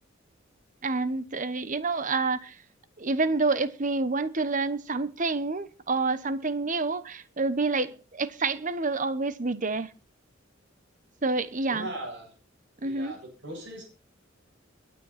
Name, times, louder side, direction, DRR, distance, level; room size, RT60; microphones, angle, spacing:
voice 1, 0.8-2.5 3.0-9.9 11.2-11.9 12.8-13.1, right 3 dB, 40° right, 1.1 m, -28 dB
voice 2, 11.7-12.3 12.8-13.8, right 1 dB, 65° right, 7.9 m, -39 dB
21.5 x 9.5 x 4.3 m
head